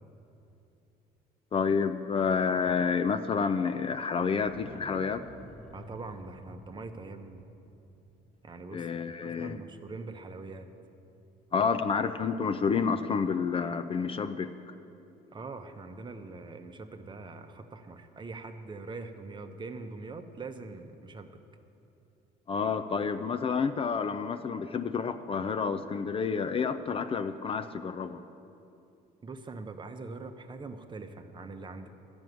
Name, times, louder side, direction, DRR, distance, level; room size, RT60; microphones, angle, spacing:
voice 1, 1.5-5.2 8.7-9.6 11.5-14.5 22.5-28.2, left 5 dB, 35° left, 9 dB, 0.5 m, -29 dB
sound 1, 4.4-9.1 9.4-9.5, equal, ahead, 1.0 m, -51 dB
voice 2, 5.7-7.4 8.4-10.7 15.3-21.4 29.2-31.9, right 3 dB, 25° right, 7 dB, 0.8 m, -43 dB
12.0 x 6.2 x 9.3 m, 2.7 s
cardioid pair, 110°, 17 cm